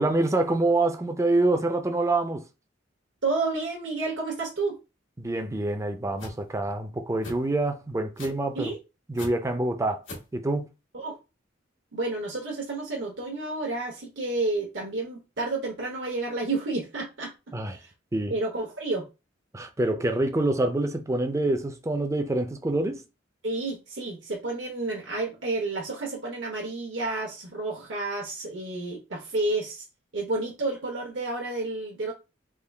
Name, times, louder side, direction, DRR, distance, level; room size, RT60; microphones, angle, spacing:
voice 1, 0.0-2.4 5.2-8.7 9.1-10.0 10.3-10.7 17.5-17.8 18.1-18.3 19.5-23.0, right 2 dB, 15° right, 0.4 m, -26 dB
voice 2, 3.2-4.8 8.5-8.8 10.9-11.2 11.9-17.3 17.7-17.9 18.3-19.1 23.4-29.8 30.1-32.1, right 2 dB, 75° right, 0.9 m, -30 dB
sound 1, 6.2-6.4 7.2-7.4 8.2-8.5 9.2-9.3 10.1-10.3, left 2 dB, 85° left, 1.6 m, -38 dB
3.7 x 2.3 x 3.3 m
head